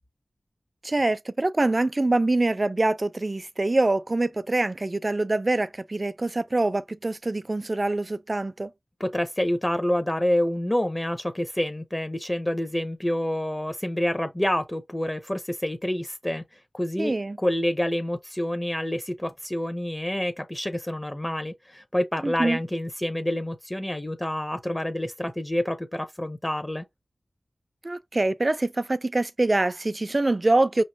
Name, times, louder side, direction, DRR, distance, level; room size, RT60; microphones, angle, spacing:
voice 1, 0.8-8.7 17.0-17.4 22.2-22.6 27.8-30.8, right 2 dB, 40° right, 0.4 m, -24 dB
voice 2, 9.0-26.9, left 1 dB, 20° left, 0.7 m, -28 dB
5.3 x 3.0 x 2.7 m
wide cardioid pair, 55°, 0 cm